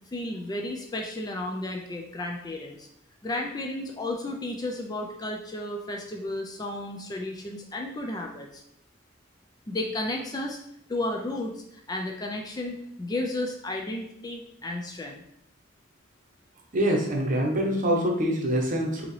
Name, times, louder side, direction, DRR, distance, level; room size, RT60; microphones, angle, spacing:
voice 1, 0.1-2.9 3.2-8.6 9.7-10.6 10.9-15.2, left 1 dB, 20° left, 2 dB, 0.3 m, -33 dB
voice 2, 16.7-19.0, equal, 40° right, 0 dB, 0.9 m, -25 dB
5.0 x 2.8 x 3.1 m, 0.76 s
head